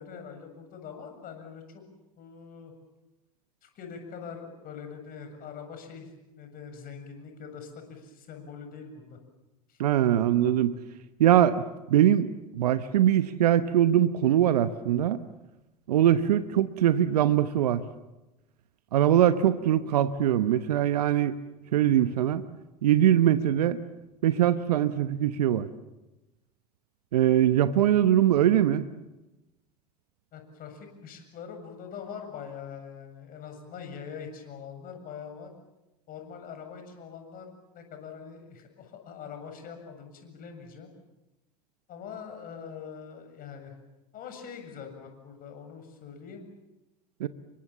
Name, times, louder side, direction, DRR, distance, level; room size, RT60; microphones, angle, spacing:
voice 1, 0.0-1.8 2.2-2.7 3.6-6.1 6.4-9.2 9.7-9.8 30.3-35.5 36.1-40.9 41.9-43.7 44.1-46.4, left 6 dB, 45° left, 6 dB, 7.5 m, -43 dB
voice 2, 9.8-10.8 11.2-11.6 11.9-12.3 12.5-15.2 15.9-17.8 18.9-21.4 21.7-22.4 22.8-23.8 24.2-25.7 27.1-28.9 47.2-47.3, right 11 dB, 75° right, 12 dB, 1.1 m, -22 dB
29.5 x 24.0 x 7.4 m, 1.0 s
hypercardioid pair, 80°, 20 cm